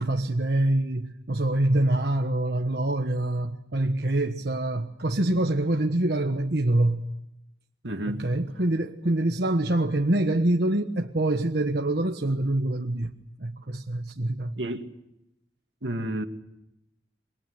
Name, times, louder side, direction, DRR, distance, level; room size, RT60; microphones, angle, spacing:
voice 1, 0.0-7.0 8.1-13.1 13.4-14.6, right 1 dB, 65° right, 1.3 m, -25 dB
voice 2, 7.8-8.2 14.6-14.9 15.8-16.2, right 1 dB, 85° right, 2.4 m, -30 dB
28.0 x 24.0 x 8.0 m
head